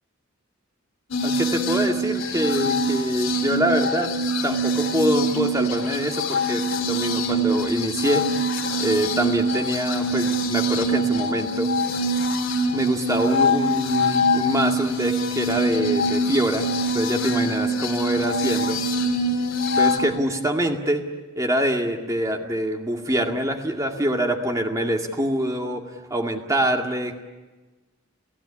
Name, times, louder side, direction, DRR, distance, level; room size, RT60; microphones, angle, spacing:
sound 1, 1.1-20.0, equal, 65° left, 3.2 m, -24 dB
voice 1, 1.2-4.1 4.4-8.2 8.8-11.7 12.7-16.7 16.9-18.8 19.8-21.0 21.4-25.8 26.1-27.2, right 1 dB, 15° right, 3 dB, 2.1 m, -25 dB
29.5 x 16.0 x 9.9 m, 1.2 s
head